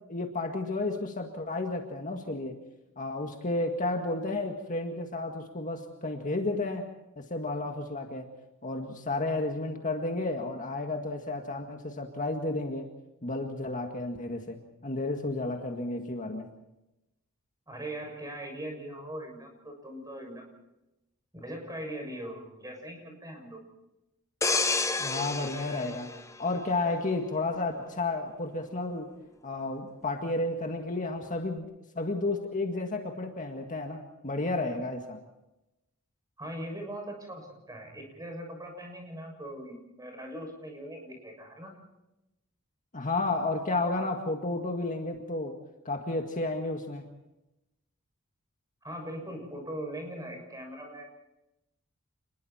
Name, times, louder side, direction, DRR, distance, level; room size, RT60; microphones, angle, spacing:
voice 1, 0.1-2.6 3.0-6.9 7.2-8.3 8.6-12.9 13.2-16.5 25.0-26.1 26.4-29.1 29.4-31.7 32.0-35.2 42.9-45.6 45.9-47.0, left 2 dB, 35° left, 3 dB, 1.9 m, -32 dB
voice 2, 17.7-20.5 21.3-23.6 36.4-41.7 48.8-51.0, right 1 dB, 15° right, 3 dB, 6.9 m, -40 dB
sound 1, 24.4-27.1 27.5-27.8, left 3 dB, 15° left, 0.9 m, -30 dB
29.0 x 21.0 x 4.4 m, 0.93 s
head